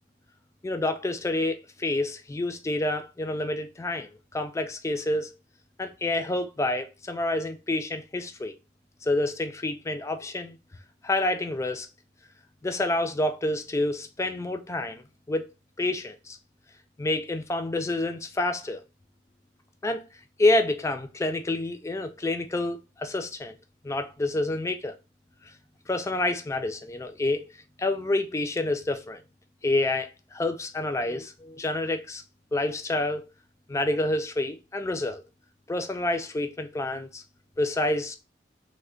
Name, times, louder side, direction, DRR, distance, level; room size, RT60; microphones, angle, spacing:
voice 1, 0.6-5.3 5.8-8.5 9.0-10.6 11.0-11.9 12.6-15.0 15.3-15.5 15.8-16.4 17.0-18.8 19.8-20.0 20.4-23.6 23.8-24.9 25.9-27.5 27.8-29.2 29.6-32.2 32.5-33.3 33.7-35.2 35.7-37.2 37.6-38.2, left 2 dB, 15° left, 0.3 m, -28 dB
3.3 x 2.1 x 3.7 m
head